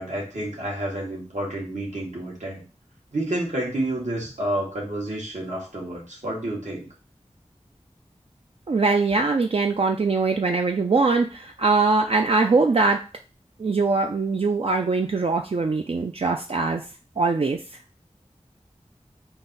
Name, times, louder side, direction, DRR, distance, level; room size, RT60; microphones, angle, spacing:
voice 1, 0.0-2.6 3.1-6.9, right 1 dB, 75° right, -4 dB, 1.6 m, -29 dB
voice 2, 8.7-13.0 13.6-16.8 17.2-17.6, right 3 dB, 55° right, 3 dB, 0.4 m, -22 dB
3.8 x 2.6 x 4.0 m, 0.34 s
wide cardioid pair, 45°, 12 cm